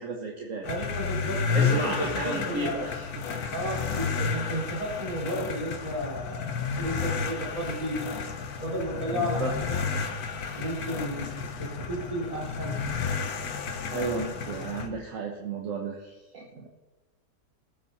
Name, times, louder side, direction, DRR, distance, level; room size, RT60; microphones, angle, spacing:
voice 1, 0.0-0.7 1.5-3.5 9.1-9.5 13.9-16.7, right 3 dB, 60° right, 1 dB, 1.6 m, -34 dB
sound 1, 0.6-14.9, left 5 dB, 80° left, 1.6 m, -31 dB
voice 2, 0.6-2.8 3.5-8.1 8.6-9.8 10.5-12.8, equal, 20° right, -5 dB, 4.8 m, -33 dB
18.5 x 8.1 x 4.2 m, 1.2 s
omnidirectional pair, 1.6 m